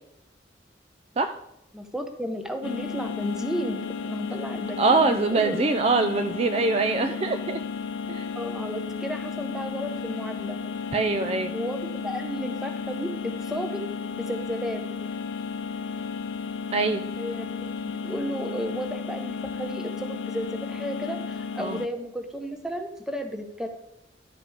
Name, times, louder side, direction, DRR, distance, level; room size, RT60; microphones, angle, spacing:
voice 1, 1.7-5.6 8.4-10.6 11.5-14.8 17.2-23.7, equal, 5° right, 5 dB, 0.8 m, -33 dB
sound 1, 2.6-21.9, left 5 dB, 90° left, 0.5 m, -33 dB
voice 2, 4.8-7.6 8.1-8.3 10.9-11.5 16.7-17.0 21.6-21.8, right 3 dB, 35° right, 8 dB, 0.3 m, -23 dB
11.0 x 5.0 x 4.8 m, 0.85 s
head